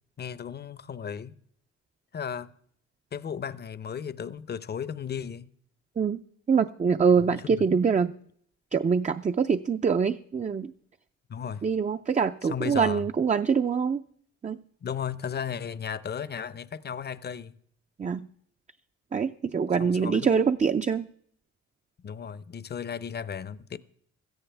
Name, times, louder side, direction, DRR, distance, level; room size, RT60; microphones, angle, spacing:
voice 1, 0.2-1.3 2.1-2.5 3.1-5.5 7.1-7.7 11.3-11.6 12.4-13.1 14.8-17.5 19.8-20.3 22.0-23.8, left 7 dB, 35° left, 0.7 m, -35 dB
voice 2, 6.5-8.1 8.7-10.7 11.6-14.0 14.4-14.6 18.0-18.3 19.1-21.0, right 6 dB, 25° right, 0.5 m, -24 dB
17.0 x 13.5 x 3.4 m
cardioid pair, 90°, 30 cm